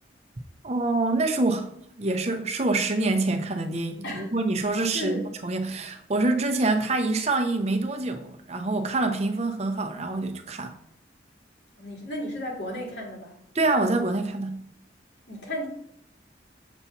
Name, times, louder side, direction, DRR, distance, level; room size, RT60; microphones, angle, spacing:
voice 1, 0.6-1.7 2.0-10.7 13.5-14.6, right 2 dB, 35° right, 0.6 m, -26 dB
voice 2, 4.0-4.3 4.9-5.3 11.8-13.4 15.3-15.7, equal, 70° left, 1.9 m, -34 dB
7.0 x 2.8 x 5.7 m
head